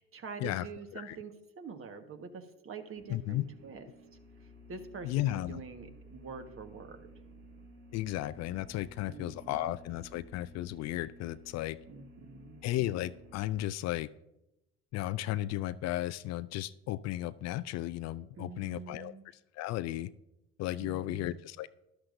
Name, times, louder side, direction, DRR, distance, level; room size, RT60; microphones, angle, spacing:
voice 1, 0.0-3.9 4.7-7.1 9.1-9.7 11.9-12.6 18.4-19.2 20.8-21.4, right 5 dB, 40° right, 6 dB, 1.5 m, -46 dB
sound 1, 2.9-13.7, equal, 85° right, 2.4 m, -55 dB
voice 2, 3.1-3.4 5.0-5.6 7.9-11.8 12.6-14.1 14.9-19.1 19.5-20.1 20.6-21.7, left 15 dB, 55° left, 16 dB, 0.4 m, -34 dB
13.0 x 11.5 x 2.6 m, 0.92 s
hypercardioid pair, 75°, 33 cm